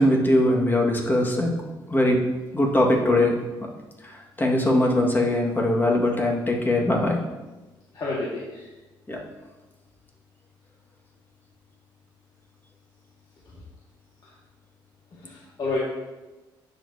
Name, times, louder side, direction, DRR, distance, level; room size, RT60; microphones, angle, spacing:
voice 1, 0.0-1.5 1.9-2.2 2.5-3.3 4.0-7.2 9.1-9.2, left 1 dB, 20° left, -1 dB, 1.8 m, -21 dB
voice 2, 7.9-8.6 15.2-15.8, left 2 dB, 50° left, -6 dB, 1.9 m, -29 dB
9.8 x 7.0 x 2.8 m, 1.1 s
cardioid pair, 75°, 9 cm